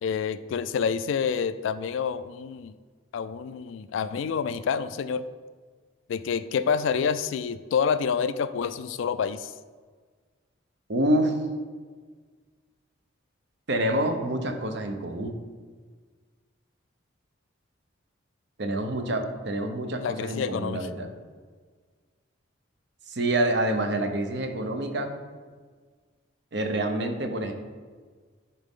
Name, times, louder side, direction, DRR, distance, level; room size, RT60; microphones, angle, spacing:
voice 1, 0.0-2.7 3.1-5.3 6.1-9.5 20.0-20.9, left 6 dB, 70° left, 13 dB, 0.3 m, -28 dB
voice 2, 10.9-11.4 13.7-15.4 18.6-21.1 23.1-25.1 26.5-27.5, right 1 dB, 55° right, 6 dB, 0.7 m, -27 dB
10.0 x 4.1 x 3.6 m, 1.5 s
head